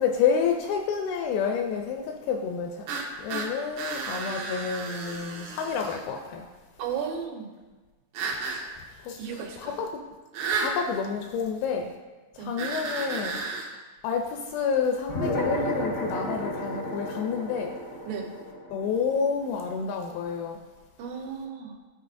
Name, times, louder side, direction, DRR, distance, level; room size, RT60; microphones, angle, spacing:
voice 1, 0.0-2.9 3.2-6.5 9.0-9.2 9.6-9.9 10.5-11.9 12.4-13.4 14.0-17.8 18.7-20.6, left 6 dB, 80° left, 3 dB, 2.2 m, -29 dB
sound 1, 2.9-6.0 8.1-8.6 10.3-10.8 12.6-13.7, right 4 dB, 70° right, 2.0 m, -32 dB
voice 2, 6.8-7.5 9.2-9.8 12.4-12.5 18.1-18.3 21.0-21.7, right 7 dB, 90° right, 1 dB, 3.1 m, -34 dB
sound 2, 15.1-19.9, equal, 65° left, 1.0 m, -32 dB
13.5 x 4.6 x 2.6 m, 1.3 s
omnidirectional pair, 4.6 m